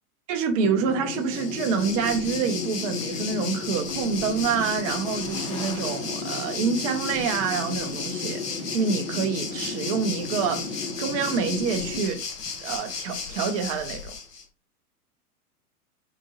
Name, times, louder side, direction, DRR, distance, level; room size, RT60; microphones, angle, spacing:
voice 1, 0.3-12.2 12.6-14.1, right 6 dB, 25° right, 0.4 m, -27 dB
sound 1, 0.6-12.0, left 3 dB, 60° left, 1.3 m, -34 dB
Waves surf, 1.1-14.4, left 5 dB, 80° left, 0.9 m, -35 dB
sound 2, 1.9-6.9, left 1 dB, 10° left, 0.8 m, -48 dB
3.7 x 2.5 x 2.9 m
figure-of-eight pair, 105°, 46 cm